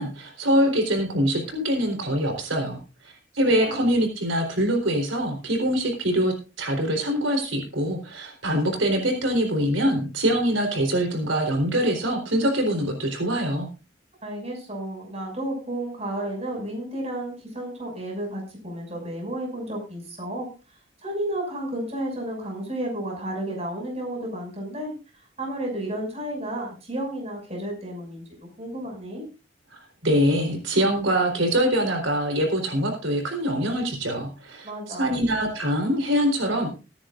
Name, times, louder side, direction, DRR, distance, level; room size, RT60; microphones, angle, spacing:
voice 1, 0.0-2.8 3.0-13.7 30.0-36.7, equal, 85° right, 3 dB, 4.0 m, -24 dB
voice 2, 14.2-20.5 21.0-24.9 25.4-29.3 34.6-35.1, right 1 dB, 35° right, 1 dB, 6.3 m, -32 dB
22.5 x 10.5 x 2.5 m, 0.31 s
head